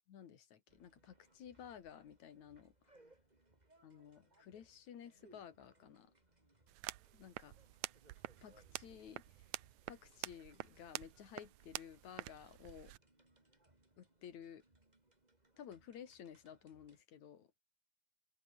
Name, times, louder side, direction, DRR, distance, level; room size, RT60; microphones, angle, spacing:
voice 1, 0.1-2.9 3.8-6.1 7.1-7.5 8.4-9.5 9.9-12.9 14.0-14.6 15.6-17.6, left 9 dB, 70° left, 3.2 m, -54 dB
sound 1, 0.7-17.0, right 2 dB, 15° right, 3.3 m, -71 dB
sound 2, 6.7-13.0, right 17 dB, 75° right, 1.9 m, -48 dB
omnidirectional pair, 3.5 m